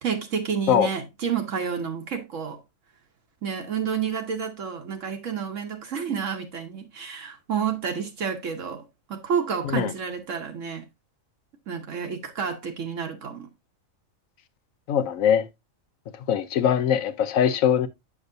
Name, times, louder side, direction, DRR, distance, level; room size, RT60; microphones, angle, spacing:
voice 1, 0.0-2.6 3.4-10.9 11.7-13.5, right 7 dB, 70° right, 1.3 m, -30 dB
voice 2, 14.9-15.5 16.3-17.9, left 8 dB, 80° left, 1.1 m, -21 dB
8.1 x 6.1 x 2.6 m
omnidirectional pair, 1.4 m